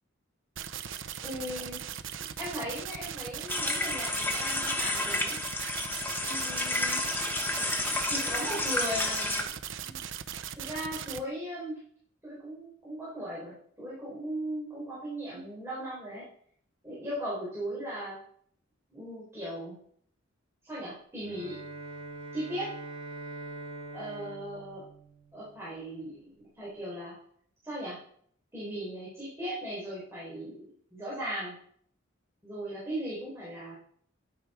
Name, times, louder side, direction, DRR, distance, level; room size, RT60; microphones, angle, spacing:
sound 1, 0.6-11.2, right 9 dB, 70° right, 0.7 m, -39 dB
voice 1, 1.2-1.8 2.4-5.4 6.2-7.0 8.1-9.5 9.8-10.0 10.6-11.8 12.2-16.2 16.8-18.2 18.9-19.7 20.6-21.6 22.3-22.7 23.9-24.8 25.3-27.1 27.6-28.0 28.5-31.5 32.4-33.8, equal, 15° right, -8 dB, 4.9 m, -38 dB
sound 2, 3.5-9.4, left 2 dB, 10° left, 1.4 m, -31 dB
Bowed string instrument, 21.2-25.8, right 2 dB, 30° right, 4.8 m, -43 dB
11.0 x 9.2 x 4.7 m, 0.62 s
head